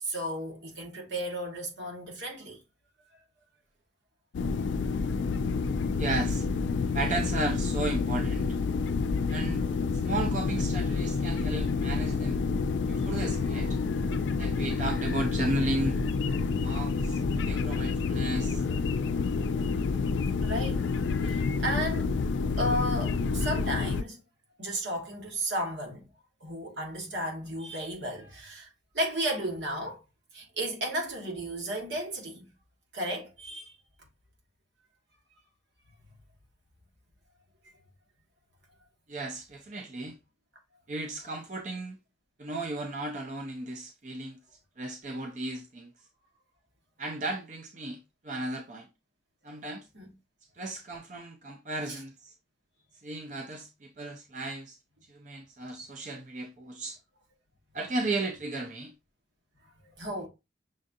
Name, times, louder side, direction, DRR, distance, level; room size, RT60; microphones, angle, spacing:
voice 1, 0.0-2.6 20.4-20.8 21.2-22.1 22.6-24.2 24.6-26.1 26.4-28.7 28.9-30.0 30.3-32.5 32.9-33.7 49.9-50.1 51.9-52.0 60.0-60.3, right 1 dB, 80° right, 1.6 m, -33 dB
Distant small boat returning to marina, 4.3-24.0, left 4 dB, 90° left, 0.3 m, -28 dB
voice 2, 6.0-6.5 6.9-8.5 9.3-9.6 10.0-12.4 12.9-13.8 14.4-16.0 16.6-18.6 39.1-40.2 40.9-42.0 42.4-44.4 44.8-45.9 47.0-48.9 49.4-49.8 50.6-52.3 53.0-54.8 55.1-57.0 57.7-58.9, right 2 dB, 45° right, 0.5 m, -34 dB
6.3 x 2.5 x 2.6 m
head